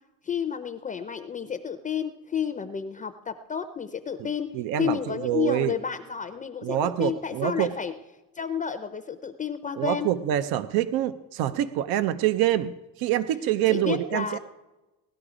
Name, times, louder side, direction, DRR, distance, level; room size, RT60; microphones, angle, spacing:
voice 1, 0.2-7.9 8.3-10.1 13.7-14.4, left 7 dB, 20° left, 9 dB, 0.5 m, -31 dB
voice 2, 4.5-5.7 6.6-7.7 9.8-12.7 13.0-14.4, right 12 dB, 85° right, 13 dB, 0.7 m, -25 dB
18.0 x 12.0 x 4.9 m, 1.1 s
cardioid pair, 155°, 35 cm